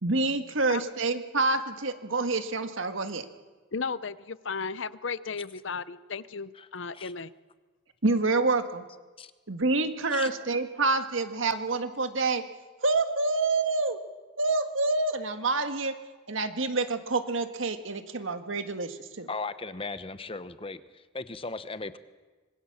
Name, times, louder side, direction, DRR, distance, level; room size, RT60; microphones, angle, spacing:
voice 1, 0.0-3.2 8.0-8.8 9.5-12.4 12.8-14.0 14.4-15.9 16.3-19.3, right 3 dB, 75° right, 8 dB, 1.7 m, -27 dB
voice 2, 3.7-7.3, left 5 dB, 70° left, 16 dB, 0.8 m, -35 dB
voice 3, 19.3-22.0, left 3 dB, 25° left, 13 dB, 0.9 m, -37 dB
26.0 x 21.5 x 7.3 m, 1.3 s
head